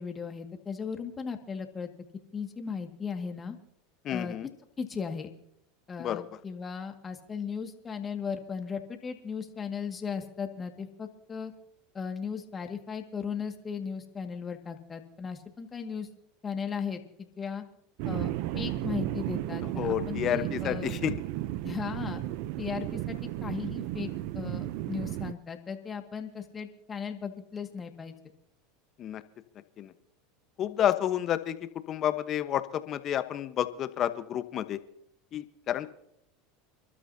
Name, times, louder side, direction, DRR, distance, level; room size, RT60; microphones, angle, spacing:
voice 1, 0.0-1.9 2.3-3.6 4.1-4.3 4.8-5.3 5.9-11.5 11.9-16.1 16.4-17.6 18.1-20.9 21.6-22.2 22.6-28.2, left 6 dB, 25° left, 5 dB, 2.0 m, -37 dB
voice 2, 4.0-4.5 6.0-6.3 19.8-21.1 29.0-29.2 29.8-29.9 30.6-31.5 31.9-34.8 35.3-35.9, left 11 dB, 40° left, 11 dB, 1.1 m, -30 dB
sound 1, 18.0-25.3, right 15 dB, 65° right, 0.6 m, -34 dB
29.5 x 12.5 x 2.8 m, 0.74 s
hypercardioid pair, 100°, 0 cm